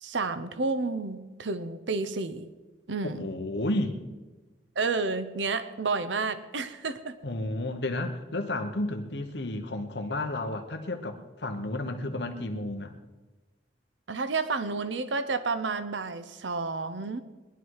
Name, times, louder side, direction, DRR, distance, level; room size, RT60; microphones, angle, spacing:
voice 1, 0.0-2.4 2.9-3.3 4.8-7.1 14.1-17.2, right 4 dB, 85° right, 11 dB, 0.9 m, -30 dB
voice 2, 3.0-4.0 7.2-12.9, left 1 dB, 65° left, 6 dB, 1.1 m, -32 dB
20.0 x 11.5 x 4.8 m, 1.2 s
head